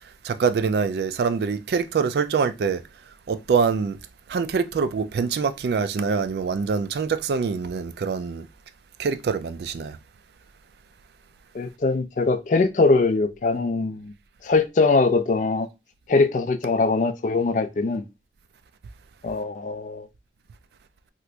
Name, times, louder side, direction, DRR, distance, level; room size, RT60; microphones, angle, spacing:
voice 1, 0.2-2.8 3.3-4.0 4.3-8.5 9.0-10.0, right 5 dB, 65° right, 0.3 m, -24 dB
voice 2, 11.5-14.1 14.4-15.7 16.1-18.0 19.2-20.1, left 3 dB, 45° left, 0.4 m, -22 dB
2.9 x 2.5 x 3.3 m
head